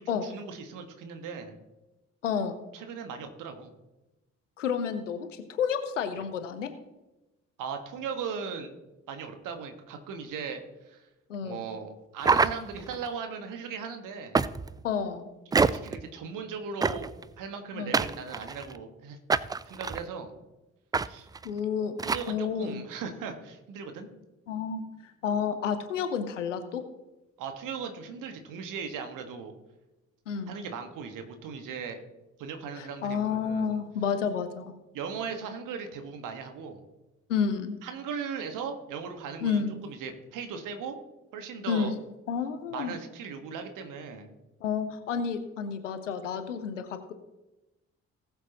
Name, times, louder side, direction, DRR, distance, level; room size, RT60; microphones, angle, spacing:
voice 1, 0.0-1.6 2.7-3.7 7.6-8.7 9.1-11.1 11.4-14.4 15.6-17.1 17.4-20.3 21.1-21.3 22.1-24.1 27.4-29.5 30.5-32.0 32.4-33.7 34.9-36.8 37.8-41.0 41.3-41.9 42.7-44.3, right 6 dB, 60° right, 6 dB, 1.7 m, -38 dB
voice 2, 2.2-2.6 4.6-6.7 11.3-11.6 14.8-15.3 17.7-18.0 21.4-22.0 22.3-22.8 24.5-26.8 30.3-30.6 32.8-34.7 37.3-37.8 39.4-39.8 41.7-42.0 42.3-43.0 44.6-47.1, left 6 dB, 80° left, 10 dB, 0.9 m, -30 dB
sound 1, 12.2-13.1 14.3-14.8 15.5-16.0 16.8-17.2 17.9-18.8 19.3-20.0 20.9-21.1 21.3-21.5 22.0-22.3, right 4 dB, 10° right, 0.3 m, -26 dB
19.0 x 7.7 x 3.0 m, 1.0 s
figure-of-eight pair, 40°, 37 cm